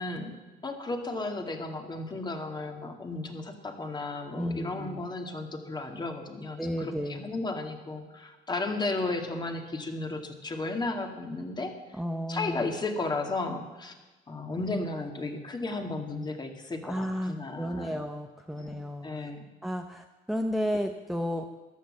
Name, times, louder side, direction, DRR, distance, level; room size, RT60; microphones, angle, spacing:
voice 1, 0.0-12.0 12.3-13.9 14.3-17.9 18.6-18.8 19.0-19.5, left 2 dB, 25° left, 4 dB, 2.2 m, -34 dB
voice 2, 4.4-5.0 6.6-7.3 11.9-12.8 16.8-19.3 19.6-21.5, equal, ahead, 4 dB, 1.0 m, -33 dB
14.0 x 11.0 x 7.6 m, 1.2 s
cardioid pair, 110°, 17 cm